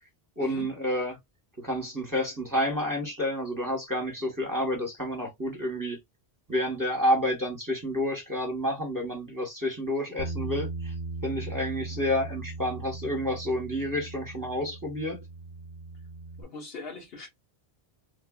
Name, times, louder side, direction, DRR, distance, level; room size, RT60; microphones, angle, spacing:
voice 1, 0.4-1.2 1.6-6.0 6.5-10.9 11.2-15.2, left 1 dB, 20° right, 1.1 m, -29 dB
Bass guitar, 10.2-16.4, right 3 dB, 50° right, 0.6 m, -38 dB
voice 2, 16.4-17.3, left 3 dB, 70° left, 1.4 m, -41 dB
3.4 x 2.5 x 2.3 m
omnidirectional pair, 1.0 m